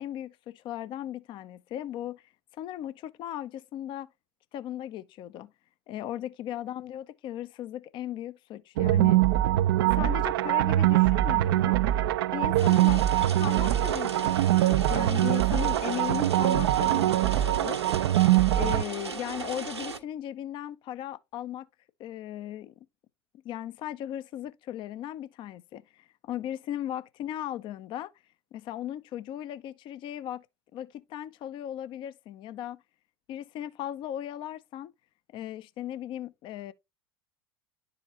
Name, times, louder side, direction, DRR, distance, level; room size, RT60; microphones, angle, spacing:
voice 1, 0.0-2.3 2.6-4.1 4.5-5.5 5.9-9.3 9.9-11.8 12.3-18.0 18.6-21.7 22.0-22.7 23.4-28.1 28.5-30.5 30.7-32.8 33.3-34.9 35.3-36.7, left 12 dB, 35° left, 0.6 m, -37 dB
sound 1, 8.8-18.8, right 14 dB, 55° right, 0.5 m, -23 dB
sound 2, 12.6-20.0, right 5 dB, 80° right, 1.4 m, -37 dB
11.0 x 4.9 x 2.9 m
figure-of-eight pair, 75°, 14 cm